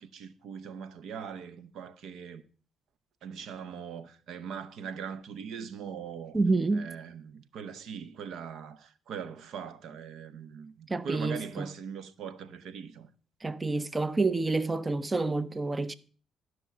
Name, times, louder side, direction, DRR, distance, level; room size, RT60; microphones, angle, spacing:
voice 1, 0.0-2.4 3.2-6.4 6.7-13.1, right 7 dB, 75° right, 0.8 m, -41 dB
voice 2, 6.3-6.9 10.9-11.7 13.4-15.9, right 3 dB, 25° right, 0.6 m, -28 dB
12.5 x 6.2 x 5.8 m
cardioid pair, 90°, 0 cm